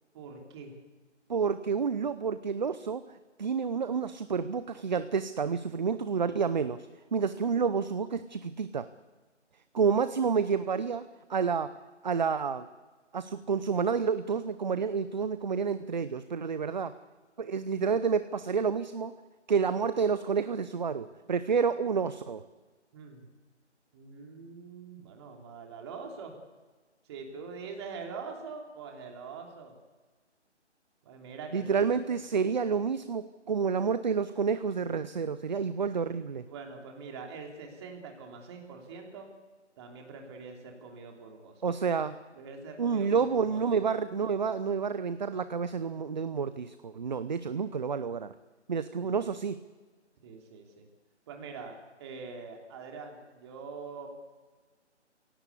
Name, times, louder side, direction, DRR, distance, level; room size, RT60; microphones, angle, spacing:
voice 1, 0.1-0.7 22.9-23.3 23.9-26.3 27.1-29.7 31.0-32.0 36.5-39.3 39.8-41.6 42.4-43.8 49.0-49.2 50.2-50.8 51.3-54.1, right 4 dB, 25° right, 2 dB, 3.2 m, -44 dB
voice 2, 1.3-3.0 3.4-8.9 9.7-11.0 11.3-11.7 12.0-12.7 13.1-16.9 17.4-19.1 19.5-22.4 31.5-36.4 41.6-42.2 42.8-48.3 48.7-49.6, right 6 dB, 40° right, 13 dB, 0.8 m, -29 dB
29.5 x 17.5 x 8.4 m, 1.4 s
figure-of-eight pair, 150°, 35 cm